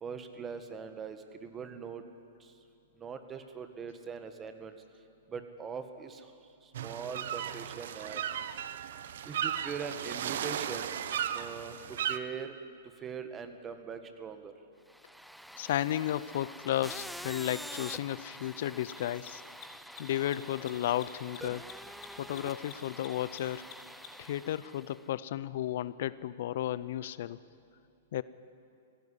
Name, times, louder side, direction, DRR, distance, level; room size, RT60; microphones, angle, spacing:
voice 1, 0.0-2.0 2.4-2.5 3.0-4.7 5.3-6.2 6.8-8.3 9.2-10.9 11.3-12.6 13.0-14.5, right 6 dB, 20° right, 8 dB, 1.7 m, -41 dB
sound 1, 6.7-12.2, right 9 dB, 65° right, 0.8 m, -35 dB
sound 2, 14.9-25.1, equal, ahead, 0.4 m, -47 dB
voice 2, 15.6-19.4 20.0-21.7 22.2-23.7 24.2-27.4 28.1-28.2, left 12 dB, 60° left, 17 dB, 0.5 m, -33 dB
Mechanisms, 15.7-15.8 18.7-24.3, left 9 dB, 45° left, 5.3 m, -50 dB
17.5 x 15.5 x 10.0 m, 2.5 s
hypercardioid pair, 120°, 0 cm